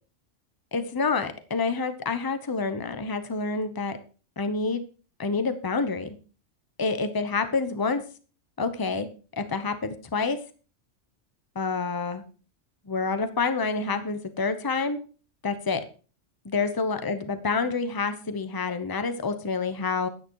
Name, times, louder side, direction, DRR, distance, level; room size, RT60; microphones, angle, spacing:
voice 1, 0.7-4.0 4.4-4.8 5.2-6.2 6.8-8.0 8.6-9.1 9.3-10.4 11.5-12.2 12.9-15.0 15.4-15.8 16.4-20.1, left 4 dB, 20° left, 10 dB, 0.9 m, -28 dB
11.0 x 9.2 x 4.7 m, 0.37 s
omnidirectional pair, 1.3 m